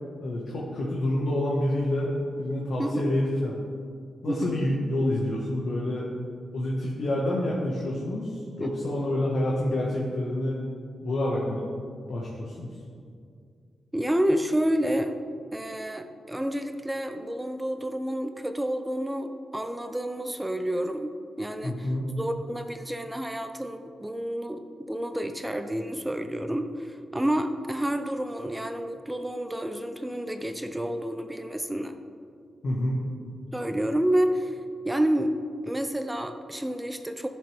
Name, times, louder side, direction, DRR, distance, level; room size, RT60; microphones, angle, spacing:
voice 1, 0.2-2.1 2.4-3.5 4.2-6.1 6.5-10.6 11.0-11.6 12.1-12.7 21.6-22.1 32.6-33.0, left 1 dB, 60° left, -4 dB, 1.4 m, -28 dB
voice 2, 2.8-3.1 4.3-4.6 8.6-8.7 13.9-15.2 15.5-21.9 22.2-32.0 33.5-34.6 34.8-35.3 35.6-37.3, right 1 dB, 10° right, 7 dB, 0.5 m, -29 dB
14.0 x 6.8 x 3.4 m, 2.3 s
wide cardioid pair, 135°, 0 cm